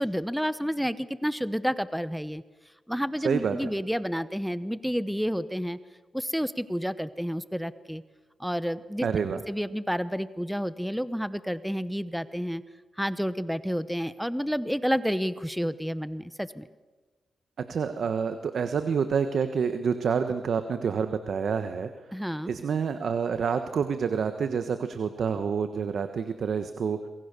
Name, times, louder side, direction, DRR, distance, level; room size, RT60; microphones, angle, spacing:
voice 1, 0.0-2.4 2.9-5.8 6.1-8.0 8.4-9.1 9.5-12.6 13.0-16.7 22.1-22.5, equal, ahead, 14 dB, 1.0 m, -30 dB
voice 2, 3.2-3.7 9.0-9.4 17.6-21.9 22.4-27.1, right 6 dB, 70° right, 9 dB, 1.3 m, -28 dB
27.5 x 23.5 x 6.9 m, 1.3 s
cardioid pair, 85°, 0 cm